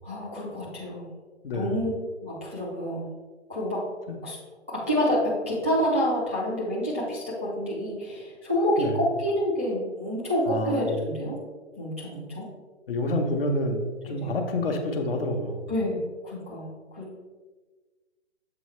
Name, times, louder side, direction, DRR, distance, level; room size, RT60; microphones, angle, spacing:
voice 1, 0.0-1.1 1.5-1.9 2.2-3.1 3.5-3.8 4.2-4.4 4.7-11.4 11.8-12.5 14.0-14.3 15.7-17.1, equal, 10° right, -8 dB, 0.4 m, -28 dB
voice 2, 10.5-10.9 12.9-15.7, left 1 dB, 55° left, 3 dB, 1.0 m, -28 dB
7.0 x 4.4 x 3.1 m, 1.3 s
hypercardioid pair, 155°, 35 cm